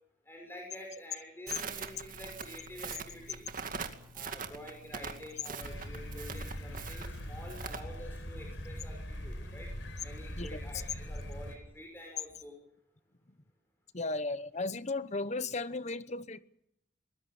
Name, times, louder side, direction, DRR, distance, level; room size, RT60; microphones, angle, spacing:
voice 1, 0.2-3.6 4.1-9.7 10.0-12.6, left 1 dB, 10° left, 6.2 m, -48 dB
Crackle, 1.5-7.8, right 5 dB, 45° right, 2.3 m, -43 dB
sound 1, 5.6-11.6, equal, 85° left, 4.6 m, -41 dB
voice 2, 13.9-16.4, left 2 dB, 40° left, 1.0 m, -35 dB
23.0 x 20.0 x 7.2 m
head